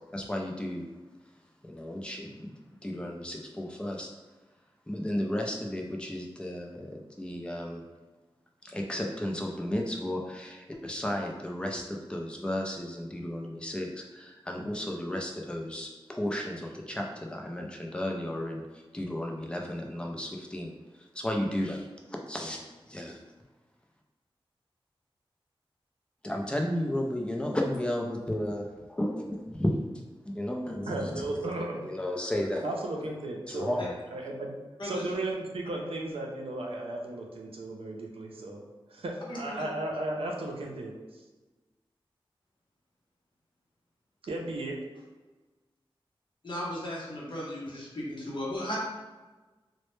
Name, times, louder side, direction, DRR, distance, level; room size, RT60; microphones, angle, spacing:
voice 1, 0.1-0.9 1.7-2.5 2.8-4.1 4.9-7.8 8.6-18.6 18.9-20.7 21.2-21.8 22.3-22.6 22.9-23.2 26.2-29.7 30.3-31.4 31.8-32.7 33.5-33.9, left 1 dB, 10° left, 0 dB, 0.4 m, -33 dB
voice 2, 30.9-31.8 32.6-33.8 34.1-34.5 34.8-38.6 38.9-40.9 44.3-44.8, right 2 dB, 75° right, -1 dB, 0.4 m, -35 dB
voice 3, 39.3-39.6 46.4-48.8, left 1 dB, 55° left, -6 dB, 0.7 m, -36 dB
2.1 x 2.0 x 3.0 m, 1.2 s
wide cardioid pair, 75°, 10 cm